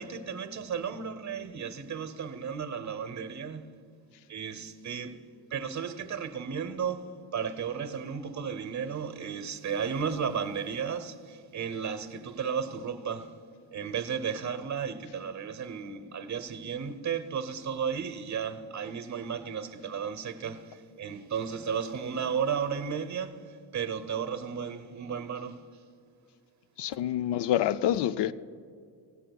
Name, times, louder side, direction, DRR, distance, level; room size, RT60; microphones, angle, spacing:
voice 1, 0.0-3.7 4.3-5.2 5.5-13.4 13.7-23.5 23.7-25.7, right 7 dB, 40° right, 0.8 m, -34 dB
voice 2, 26.8-28.3, left 11 dB, 70° left, 0.5 m, -27 dB
17.0 x 15.5 x 2.3 m
cardioid pair, 85°, 43 cm